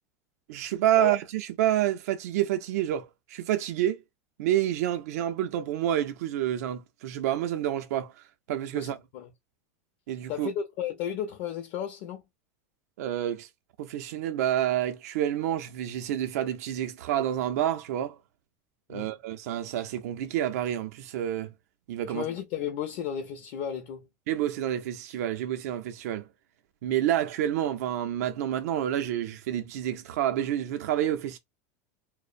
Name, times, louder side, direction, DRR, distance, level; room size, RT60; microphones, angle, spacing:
voice 1, 0.5-4.0 4.4-8.1 8.5-8.9 10.1-10.5 13.0-13.5 13.8-18.2 18.9-21.5 21.9-22.2 24.3-26.3 26.8-31.4, right 11 dB, 70° right, 0.5 m, -28 dB
voice 2, 8.7-9.3 10.3-12.2 18.9-19.1 22.0-24.1, left 9 dB, 50° left, 0.5 m, -34 dB
2.5 x 2.0 x 2.4 m
supercardioid pair, 160°, 9 cm